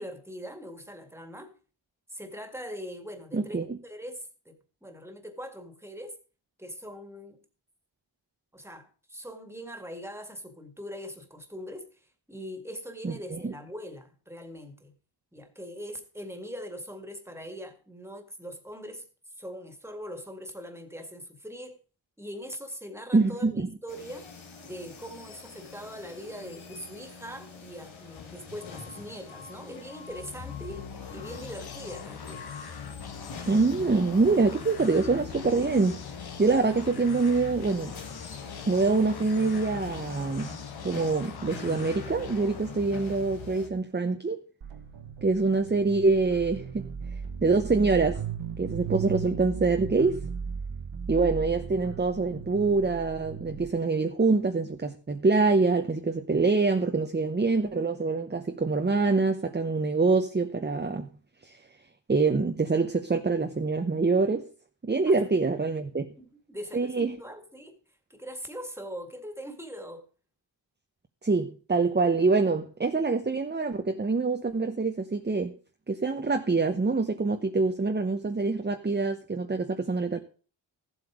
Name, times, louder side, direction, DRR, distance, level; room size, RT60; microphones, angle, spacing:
voice 1, 0.0-1.5 2.1-6.2 6.6-7.4 8.5-14.9 15.3-19.1 19.4-21.8 22.2-24.3 24.6-32.6 65.1-65.5 66.2-67.8 68.1-70.0, equal, 5° right, 2.0 m, -42 dB
voice 2, 3.3-3.8 13.0-13.5 23.1-23.7 33.5-36.0 36.4-37.9 38.7-40.6 40.8-44.4 45.2-46.8 47.4-48.2 48.6-50.2 51.1-61.1 61.4-61.6 62.1-64.5 64.8-66.1 66.7-67.2 71.2-75.5 75.9-80.2, right 3 dB, 20° right, 0.9 m, -25 dB
sound 1, 23.9-43.7, left 4 dB, 85° left, 1.9 m, -45 dB
sound 2, 30.0-43.8, left 7 dB, 55° left, 1.2 m, -42 dB
sound 3, 44.6-53.7, right 6 dB, 75° right, 1.5 m, -37 dB
14.0 x 8.0 x 5.0 m
cardioid pair, 80°, 46 cm